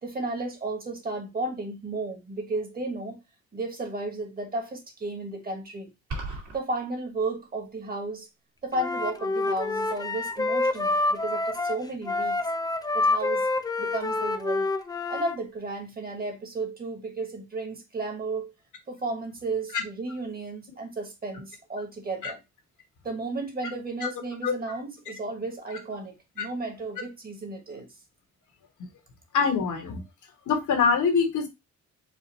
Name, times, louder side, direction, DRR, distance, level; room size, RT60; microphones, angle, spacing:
voice 1, 0.0-3.2 3.5-5.9 6.5-8.3 8.6-12.4 12.9-13.5 13.8-14.7 15.1-18.5 18.9-22.4 23.0-27.9, right 2 dB, 30° right, 1.3 m, -33 dB
sound 1, 6.1-6.6, right 3 dB, 75° right, 2.2 m, -34 dB
Wind instrument woodwind instrument, 8.7-15.4, left 2 dB, 15° left, 0.4 m, -27 dB
voice 2, 24.4-24.8 26.4-26.5 29.3-30.0 30.5-31.5, left 5 dB, 75° left, 1.5 m, -24 dB
4.8 x 2.6 x 4.1 m
cardioid pair, 150°, 30 cm